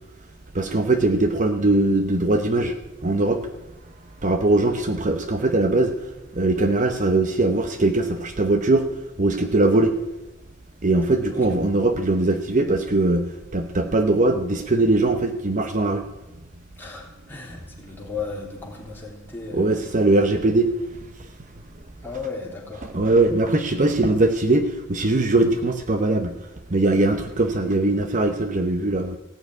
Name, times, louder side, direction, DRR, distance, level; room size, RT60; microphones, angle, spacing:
voice 1, 0.5-2.7 3.0-3.4 4.2-5.9 6.3-8.9 9.2-9.9 10.8-13.3 13.5-16.0 19.5-20.7 22.8-26.3 26.7-29.2, right 2 dB, 40° right, 7 dB, 0.9 m, -20 dB
voice 2, 16.8-19.9 22.0-23.0, left 4 dB, 10° left, -3 dB, 3.6 m, -35 dB
16.0 x 6.8 x 9.5 m, 1.0 s
head